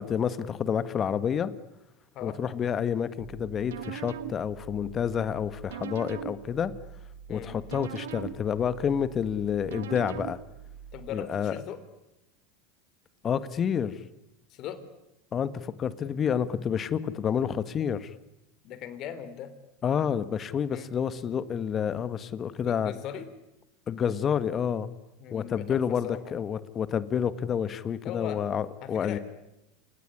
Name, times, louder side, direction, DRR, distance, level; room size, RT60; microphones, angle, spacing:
voice 1, 0.0-1.5 2.2-6.7 7.3-10.4 11.1-11.6 13.2-14.0 15.3-18.1 19.8-22.9 23.9-24.9 25.3-29.2, left 8 dB, 35° left, 16 dB, 1.6 m, -29 dB
sound 1, 3.2-11.1, right 9 dB, 75° right, 1.6 m, -42 dB
voice 2, 10.9-11.8 14.5-14.8 18.6-19.5 20.7-20.9 22.6-23.3 25.2-26.2 28.0-28.4 28.8-29.2, left 10 dB, 50° left, 13 dB, 3.5 m, -39 dB
29.5 x 18.5 x 9.9 m, 0.89 s
hypercardioid pair, 85°, 0 cm